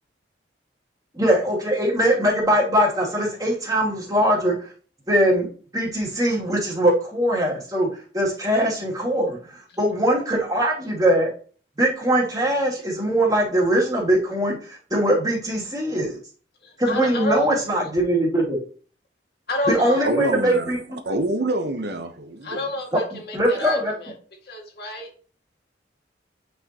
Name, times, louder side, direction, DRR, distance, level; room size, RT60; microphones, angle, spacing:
voice 1, 1.1-4.6 5.1-5.5 5.7-7.9 8.1-9.4 9.8-11.3 11.8-16.2 16.8-18.6 19.7-21.0 23.3-23.9, right 1 dB, 20° right, 2.5 m, -21 dB
voice 2, 16.6-17.5 19.5-20.0 22.4-24.1 24.5-25.1, left 1 dB, 60° left, 2.0 m, -29 dB
voice 3, 19.8-20.7 21.0-22.6 23.5-23.7, right 1 dB, 65° right, 0.9 m, -26 dB
8.8 x 5.6 x 2.9 m
head